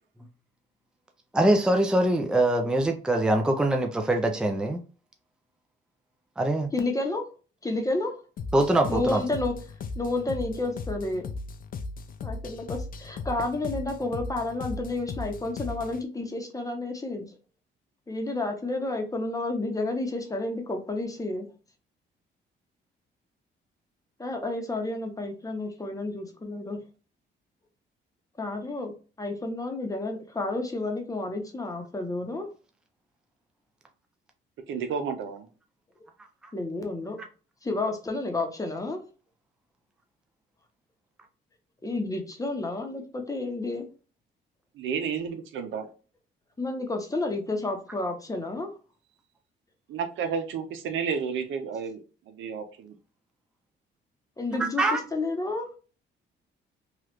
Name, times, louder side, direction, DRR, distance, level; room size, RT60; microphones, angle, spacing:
voice 1, 1.3-4.8 6.4-6.7 8.5-9.2 54.6-55.0, right 1 dB, 5° right, 0.5 m, -23 dB
voice 2, 6.7-7.3 7.6-8.1 8.9-9.6 10.0-11.2 12.2-17.3 18.1-21.5 24.2-26.8 28.4-32.5 36.5-37.2 37.6-39.0 41.8-43.9 46.6-48.7 54.4-55.7, left 2 dB, 15° left, 0.9 m, -30 dB
sound 1, 8.4-16.0, left 3 dB, 45° left, 0.5 m, -37 dB
voice 3, 34.7-35.5 44.8-45.9 49.9-52.9, right 6 dB, 80° right, 0.7 m, -31 dB
3.1 x 2.4 x 3.0 m
cardioid pair, 90°, 20 cm